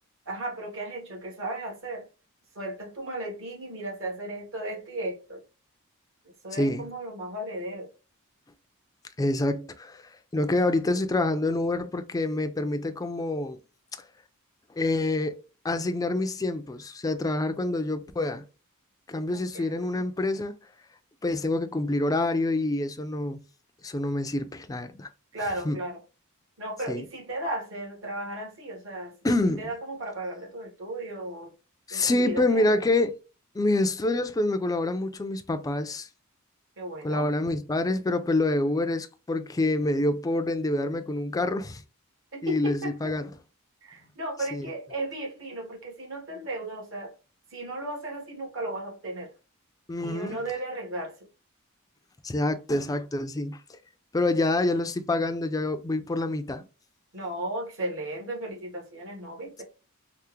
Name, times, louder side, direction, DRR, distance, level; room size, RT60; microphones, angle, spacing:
voice 1, 0.2-2.0 2.5-5.4 6.4-7.9 19.3-20.0 25.3-26.0 26.6-29.1 29.6-31.5 31.9-32.8 36.8-37.3 42.3-43.1 43.8-47.1 47.5-49.3 50.0-51.2 57.1-59.6, right 1 dB, 65° right, 1.4 m, -35 dB
voice 2, 6.5-6.9 9.2-13.6 14.8-15.4 15.6-18.4 19.1-20.5 21.2-23.4 23.8-25.1 25.6-25.8 26.9-27.0 29.2-29.7 31.9-33.2 33.5-36.1 37.0-41.8 42.4-43.3 44.5-44.7 49.9-50.4 52.2-53.8 54.1-56.6, left 2 dB, 15° left, 0.3 m, -27 dB
3.4 x 2.0 x 2.9 m
head